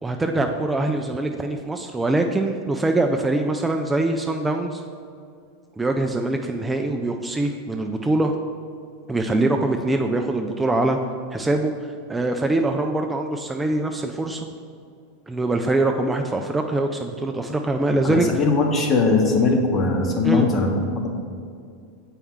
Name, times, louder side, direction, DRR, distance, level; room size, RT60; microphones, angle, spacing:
voice 1, 0.0-4.8 5.8-8.3 9.1-11.0 11.3-11.7 12.1-14.5 15.3-18.3 20.2-20.5, right 2 dB, 10° right, 4 dB, 0.3 m, -23 dB
voice 2, 18.0-21.1, left 3 dB, 30° left, 2 dB, 1.0 m, -20 dB
7.0 x 4.5 x 3.6 m, 2.3 s
hypercardioid pair, 110°, 0 cm